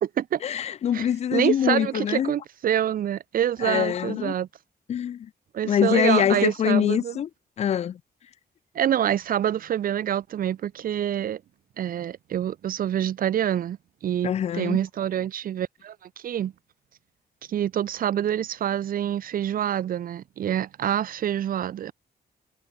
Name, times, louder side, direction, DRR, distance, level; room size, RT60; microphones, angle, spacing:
voice 1, 0.4-2.3 3.6-4.3 4.9-5.3 5.6-7.3 7.6-8.0 14.2-14.8, left 9 dB, 40° left, 0.4 m, -24 dB
voice 2, 0.9-4.5 5.5-7.2 8.7-11.4 11.8-13.8 14.0-16.0 16.2-16.5 17.5-21.9, right 10 dB, 60° right, 0.7 m, -26 dB
wide cardioid pair, 155°, 17 cm